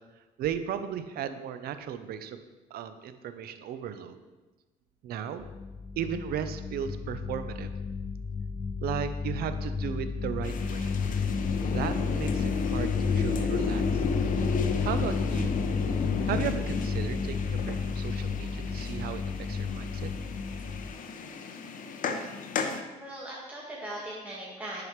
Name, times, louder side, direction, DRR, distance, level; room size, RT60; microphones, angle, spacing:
voice 1, 0.4-2.4 2.7-4.2 5.0-5.5 6.0-7.7 8.8-10.9 11.7-14.0 14.8-15.5 16.3-19.2 19.5-20.1, right 8 dB, 65° right, 10 dB, 0.6 m, -35 dB
sound 1, 5.4-20.9, left 5 dB, 30° left, 0.4 m, -31 dB
sound 2, 10.4-22.8, left 5 dB, 50° left, 0.7 m, -34 dB
voice 2, 22.9-24.8, right 1 dB, 10° right, -7 dB, 1.7 m, -39 dB
11.0 x 4.8 x 3.1 m, 1.2 s
cardioid pair, 110°, 17 cm